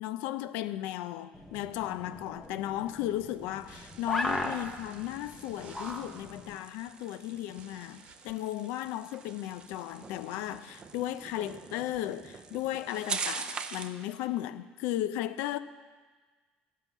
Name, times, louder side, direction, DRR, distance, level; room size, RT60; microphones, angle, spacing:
voice 1, 0.0-15.6, left 13 dB, 85° left, 0.4 m, -35 dB
sound 1, 1.3-6.6, left 1 dB, 10° left, 0.8 m, -38 dB
sound 2, 1.7-11.2, right 5 dB, 45° right, 1.1 m, -58 dB
sound 3, 3.3-14.0, right 5 dB, 25° right, 0.5 m, -43 dB
11.5 x 5.5 x 8.2 m
cardioid pair, 155°, 3 cm